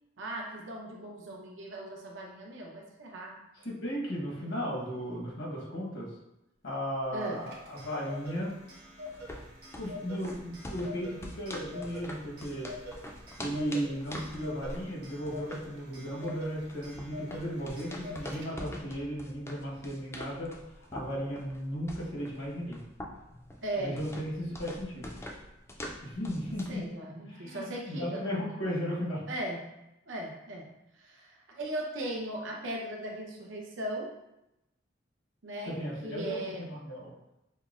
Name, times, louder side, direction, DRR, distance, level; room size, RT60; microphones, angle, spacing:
voice 1, 0.2-3.3 7.1-7.4 23.6-23.9 26.4-28.2 29.3-29.6 30.1-30.6 30.9-34.1 35.4-35.7 36.0-36.7, right 1 dB, 85° right, -1 dB, 0.7 m, -38 dB
voice 2, 3.6-6.1 6.6-8.6 9.7-12.7 13.4-20.5 20.8-22.8 23.8-25.1 26.0-26.8 27.2-29.2 35.7-37.1, equal, 75° left, -4 dB, 1.1 m, -35 dB
Clock, 7.2-18.8, left 2 dB, 60° right, 0.9 m, -46 dB
sound 1, 9.1-26.9, left 1 dB, 15° left, 0.3 m, -44 dB
5.4 x 2.0 x 2.4 m, 0.91 s
head